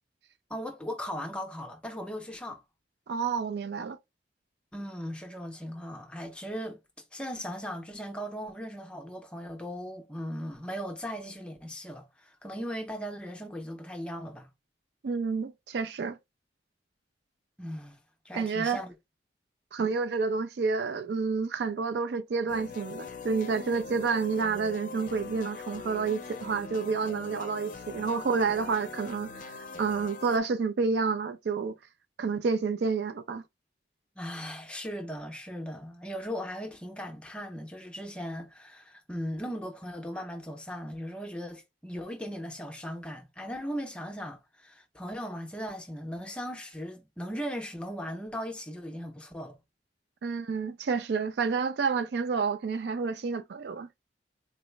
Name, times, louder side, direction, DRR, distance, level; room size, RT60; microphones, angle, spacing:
voice 1, 0.5-2.6 4.7-6.8 7.1-14.5 17.6-18.0 18.2-18.9 34.2-49.6, equal, 5° left, 0.6 m, -38 dB
voice 2, 3.1-4.0 15.0-16.2 18.3-18.8 19.7-31.8 32.2-33.4 50.2-53.9, right 5 dB, 65° right, 0.4 m, -29 dB
sound 1, 22.5-30.4, left 4 dB, 50° left, 0.5 m, -42 dB
3.9 x 2.0 x 3.2 m
head